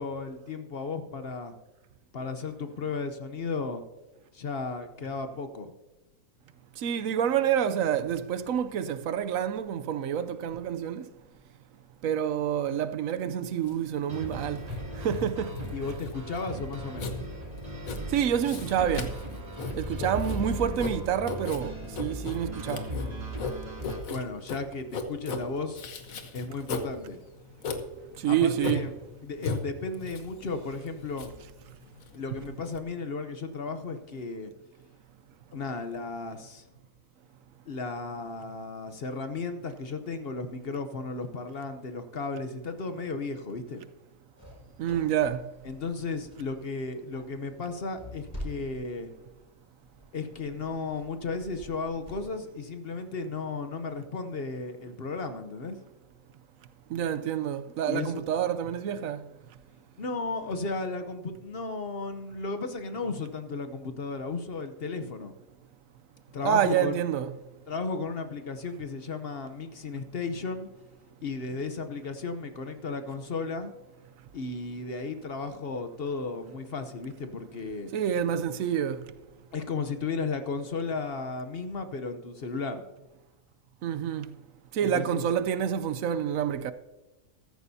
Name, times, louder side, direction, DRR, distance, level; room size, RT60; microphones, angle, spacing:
voice 1, 0.0-1.5 2.1-3.8 4.3-5.7 15.7-17.2 24.1-25.8 26.3-27.2 28.3-28.9 29.2-31.3 32.1-34.5 35.5-36.7 37.7-43.8 45.6-49.1 50.1-55.8 57.9-58.2 60.0-65.3 66.3-66.9 67.7-70.7 71.2-73.7 74.3-77.9 79.5-82.8 84.8-85.2, left 4 dB, 50° left, 0.9 m, -34 dB
voice 2, 6.8-11.1 12.0-14.7 15.0-15.5 18.1-19.1 19.8-22.9 28.2-28.9 44.8-45.4 56.9-59.2 66.4-67.3 77.9-79.0 83.8-84.3 84.7-86.7, right 9 dB, 75° right, 1.0 m, -28 dB
Writing, 13.6-32.8, left 3 dB, 75° left, 1.5 m, -38 dB
sound 1, 14.1-24.0, right 1 dB, 30° right, 2.4 m, -38 dB
sound 2, 44.4-52.4, equal, 25° left, 4.8 m, -47 dB
14.5 x 14.0 x 2.7 m
omnidirectional pair, 1.4 m